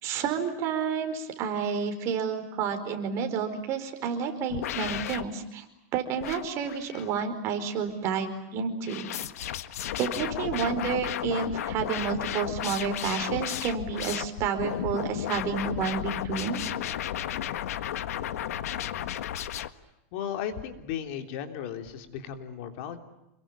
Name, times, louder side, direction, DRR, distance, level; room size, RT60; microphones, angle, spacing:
voice 1, 0.0-5.6 5.9-9.1 10.0-16.6, right 6 dB, 35° right, 6 dB, 4.8 m, -30 dB
sound 1, 4.5-5.3 6.2-7.2 8.9-19.7, left 11 dB, 85° left, 1.5 m, -33 dB
voice 2, 20.1-23.0, left 9 dB, 55° left, 6 dB, 3.4 m, -35 dB
28.5 x 22.5 x 8.8 m, 0.91 s
supercardioid pair, 155°, 8 cm